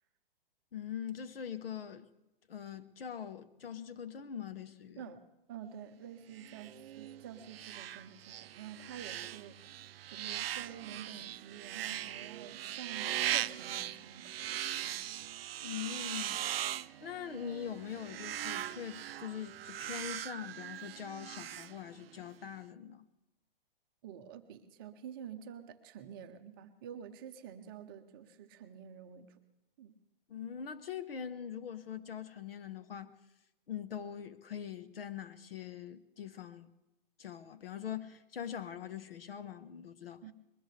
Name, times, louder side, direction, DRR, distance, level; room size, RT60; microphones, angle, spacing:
voice 1, 0.7-2.1 2.5-5.1 15.6-16.5 17.0-23.1 30.3-33.1 33.7-36.7 37.2-40.2, left 8 dB, 80° left, 1.1 m, -43 dB
voice 2, 5.5-9.6 10.1-15.0 24.0-29.4 29.8-30.0 40.2-40.3, right 8 dB, 25° right, 0.7 m, -49 dB
sound 1, 6.3-22.3, right 12 dB, 80° right, 0.5 m, -40 dB
21.5 x 20.0 x 3.3 m
hypercardioid pair, 160°, 29 cm